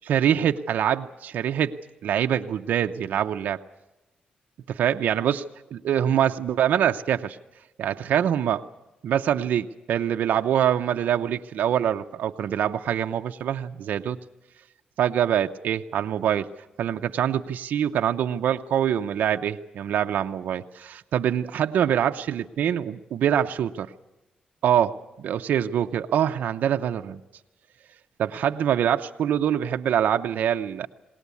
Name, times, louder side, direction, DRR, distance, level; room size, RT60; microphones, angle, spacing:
voice 1, 0.1-1.8 2.0-3.6 4.7-5.5 5.7-7.4 7.8-8.7 9.0-14.2 15.0-16.5 16.8-23.9 24.6-27.2 28.2-30.9, right 9 dB, 80° right, 6 dB, 0.6 m, -24 dB
20.5 x 18.5 x 8.3 m, 1.0 s
wide cardioid pair, 150°, 3 cm